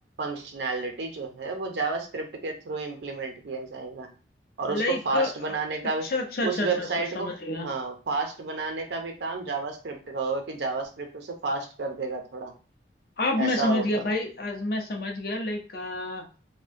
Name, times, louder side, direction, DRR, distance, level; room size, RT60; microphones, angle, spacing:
voice 1, 0.2-4.1 4.6-6.1 6.4-7.4 7.6-12.5 13.4-14.1, right 3 dB, 70° right, 4 dB, 0.5 m, -31 dB
voice 2, 4.7-5.6 6.0-6.9 7.2-7.7 13.2-16.2, left 2 dB, 55° left, 3 dB, 0.5 m, -28 dB
2.5 x 2.1 x 2.5 m, 0.36 s
head